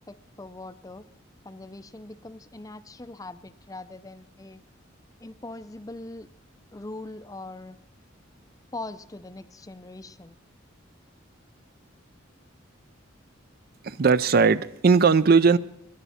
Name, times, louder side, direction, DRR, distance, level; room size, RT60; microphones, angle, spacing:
voice 1, 0.1-1.1 1.4-4.6 5.2-6.3 6.7-7.8 8.7-10.4, left 2 dB, 15° left, 0.5 m, -41 dB
voice 2, 13.8-15.6, right 5 dB, 50° right, 0.5 m, -18 dB
20.5 x 11.0 x 4.2 m
head